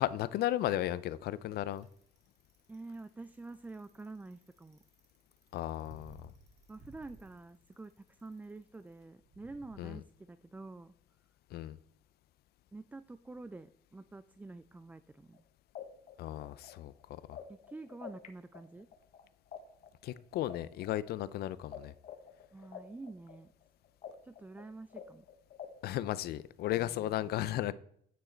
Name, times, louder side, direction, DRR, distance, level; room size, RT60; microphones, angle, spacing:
voice 1, 0.0-1.9 5.5-6.3 9.8-10.0 11.5-11.8 16.2-17.4 20.0-21.9 25.8-27.7, left 13 dB, 70° left, 17 dB, 0.5 m, -35 dB
Bicycle, 1.7-9.8, right 2 dB, 40° right, 2.4 m, -59 dB
voice 2, 2.7-4.8 6.7-10.9 12.7-15.4 17.5-18.9 22.5-23.5 24.2-25.3 26.8-27.4, right 3 dB, 10° right, 13 dB, 0.3 m, -48 dB
sound 1, 15.3-15.4 15.7-18.3 18.5-21.8 22.0-25.9, left 9 dB, 50° left, 1.3 m, -48 dB
9.4 x 6.3 x 4.4 m, 0.66 s
cardioid pair, 110°, 17 cm